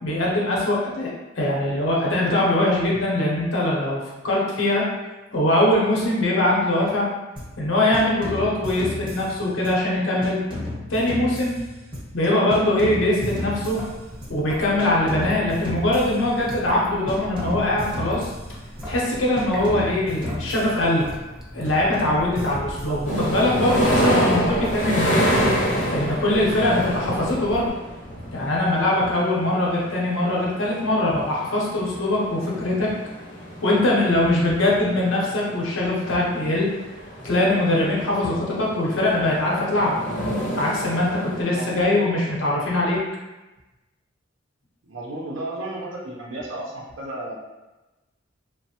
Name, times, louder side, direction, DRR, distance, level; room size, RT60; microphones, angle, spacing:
voice 1, 0.0-4.8 5.3-7.1 7.6-10.4 10.9-11.6 12.1-13.8 14.3-18.2 18.8-21.1 21.5-25.3 25.9-27.7 28.3-32.9 33.6-36.7 37.2-40.3 40.5-43.0, left 1 dB, 85° left, -4 dB, 0.8 m, -22 dB
sound 1, 7.4-7.6 7.9-9.9 10.2-12.2 12.5-14.4 14.8-16.8 17.1-19.0 19.4-21.4 21.6-23.5 23.9-25.6, left 1 dB, 25° right, 0.8 m, -35 dB
Traffic noise roadway noise / Drip / Trickle dribble, 13.7-27.7, equal, ahead, 0.4 m, -38 dB
sound 2, 23.1-41.4, equal, 40° left, 0.6 m, -28 dB
voice 2, 41.5-42.0 44.8-47.4, right 2 dB, 75° right, -4 dB, 0.5 m, -33 dB
3.1 x 2.0 x 2.8 m, 1.1 s
head